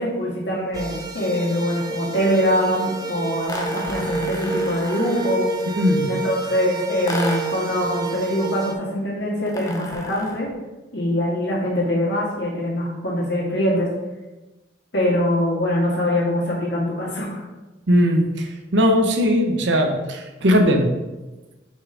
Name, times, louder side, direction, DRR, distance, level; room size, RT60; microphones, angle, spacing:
voice 1, 0.0-5.5 6.1-10.5 10.9-13.9 14.9-17.4, left 1 dB, 65° left, -4 dB, 2.0 m, -23 dB
sound 1, 0.7-8.7, right 3 dB, 20° right, 0.5 m, -29 dB
sound 2, 3.5-5.5 7.1-7.7 9.5-10.5, left 1 dB, 20° left, 0.7 m, -32 dB
voice 2, 17.9-20.9, equal, 75° right, 4 dB, 0.8 m, -19 dB
5.3 x 4.2 x 4.8 m, 1.1 s
head